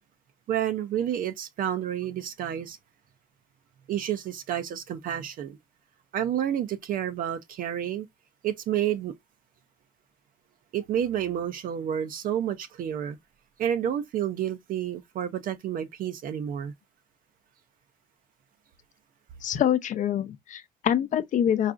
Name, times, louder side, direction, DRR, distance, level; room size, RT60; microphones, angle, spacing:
voice 1, 0.5-2.8 3.9-5.6 6.1-8.1 8.4-9.1 10.7-13.2 13.6-16.7, right 10 dB, 55° right, 0.5 m, -30 dB
voice 2, 19.4-21.7, left 10 dB, 50° left, 0.5 m, -25 dB
4.6 x 2.4 x 2.4 m
cardioid pair, 110°, 17 cm